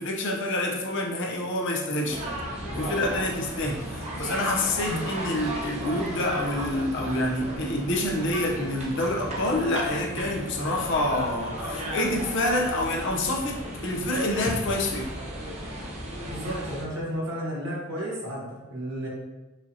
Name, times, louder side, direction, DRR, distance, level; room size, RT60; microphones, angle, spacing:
voice 1, 0.0-2.2 2.7-15.1, left 1 dB, 60° left, 1 dB, 0.6 m, -27 dB
sound 1, 2.1-16.8, right 1 dB, 30° right, 0.7 m, -35 dB
voice 2, 16.2-19.1, equal, 65° right, -4 dB, 1.2 m, -33 dB
4.9 x 2.8 x 2.7 m, 1.1 s
head